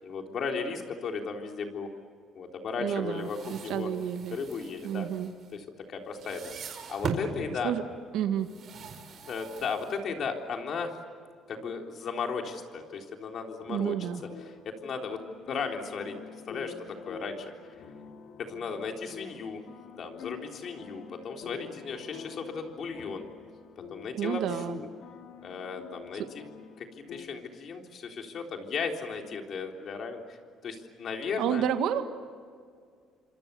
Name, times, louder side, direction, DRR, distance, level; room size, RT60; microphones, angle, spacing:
voice 1, 0.0-1.9 2.3-3.9 4.3-5.1 5.5-6.5 6.9-7.7 8.8-8.9 9.2-11.0 11.5-14.1 14.4-15.2 15.5-16.2 16.5-17.5 18.4-19.6 20.0-23.3 23.9-24.9 25.4-26.4 26.8-31.6, left 5 dB, 50° left, 3 dB, 3.8 m, -36 dB
voice 2, 2.8-4.4 4.8-5.3 7.6-7.8 8.1-8.5 13.7-14.2 24.2-24.8 31.4-32.0, right 9 dB, 75° right, 8 dB, 2.0 m, -30 dB
sound 1, 3.0-5.8 6.1-7.4 8.4-10.3, right 5 dB, 50° right, 4.4 m, -40 dB
sound 2, 13.6-27.3, left 7 dB, 65° left, 2.8 m, -47 dB
28.5 x 26.0 x 7.1 m, 2.1 s
cardioid pair, 130°, 0 cm